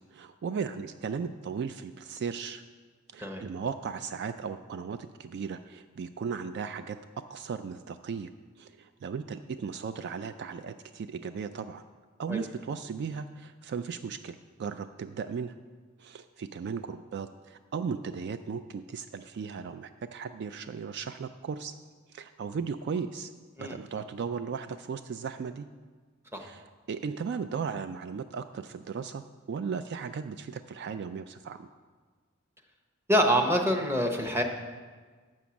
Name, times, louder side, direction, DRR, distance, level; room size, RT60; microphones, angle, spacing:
voice 1, 0.1-2.6 3.1-7.0 7.3-8.3 8.6-11.8 12.2-15.5 16.0-21.7 22.1-23.3 23.6-25.7 26.3-29.2 29.5-31.7, right 6 dB, 55° right, 11 dB, 0.3 m, -36 dB
voice 2, 33.1-34.4, equal, 10° right, 4 dB, 0.8 m, -25 dB
7.6 x 6.2 x 7.0 m, 1.5 s
head